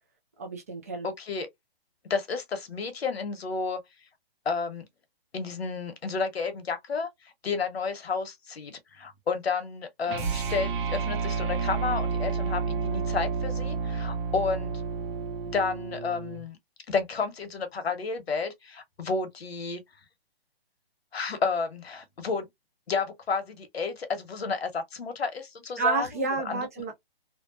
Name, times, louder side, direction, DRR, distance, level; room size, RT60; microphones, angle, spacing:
voice 1, 0.4-1.1 25.8-27.0, right 4 dB, 15° right, 0.3 m, -30 dB
voice 2, 1.0-1.5 2.1-3.8 4.4-4.8 5.3-7.1 7.4-14.7 15.5-16.6 16.9-19.8 21.1-22.5 22.9-26.7, left 5 dB, 80° left, 1.0 m, -31 dB
sound 1, 10.1-16.5, right 5 dB, 55° right, 0.9 m, -30 dB
2.8 x 2.1 x 2.4 m
hypercardioid pair, 145°, 31 cm